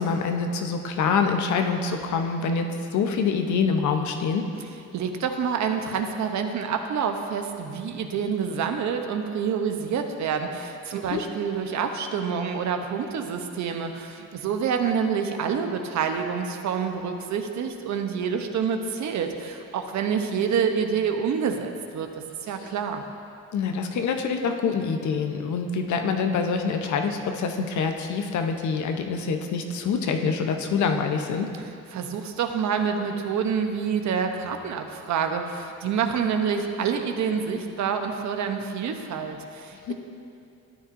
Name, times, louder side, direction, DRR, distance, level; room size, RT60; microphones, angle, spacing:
voice 1, 0.0-4.5 11.1-11.2 23.5-31.5 39.9-40.0, left 5 dB, 70° left, 5 dB, 0.8 m, -25 dB
voice 2, 4.9-23.0 31.9-39.9, right 6 dB, 70° right, 5 dB, 0.8 m, -27 dB
13.0 x 9.3 x 2.6 m, 2.6 s
cardioid pair, 90°, 30 cm